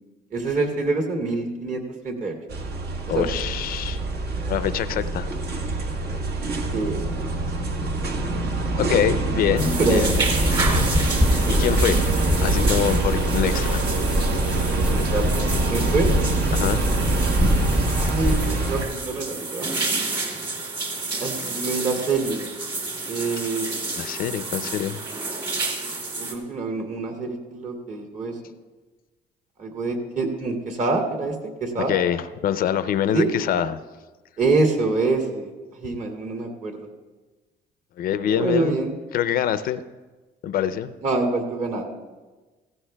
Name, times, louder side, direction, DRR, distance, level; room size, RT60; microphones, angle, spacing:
voice 1, 0.3-2.3 3.1-3.3 6.7-7.3 9.2-9.3 9.6-10.3 14.9-15.2 15.7-16.1 18.0-19.7 21.2-22.4 23.1-23.6 25.8-28.3 29.6-31.3 31.6-32.0 33.1-33.3 34.4-35.5 35.8-36.8 38.2-38.9 41.0-41.8, right 3 dB, 50° right, 2 dB, 2.3 m, -25 dB
sound 1, 2.5-18.8, right 2 dB, 65° right, 1.5 m, -24 dB
voice 2, 3.1-4.0 4.5-5.3 8.8-10.1 11.5-12.1 12.4-13.9 16.5-16.8 24.0-25.0 31.9-33.8 38.0-38.8 39.1-39.8 40.4-41.0, left 10 dB, 60° left, 13 dB, 0.5 m, -24 dB
sound 2, 9.6-26.3, right 3 dB, 30° right, 2.4 m, -30 dB
sound 3, 9.7-18.4, left 1 dB, 5° right, 0.7 m, -26 dB
16.0 x 15.5 x 2.3 m, 1.3 s
cardioid pair, 110°, 17 cm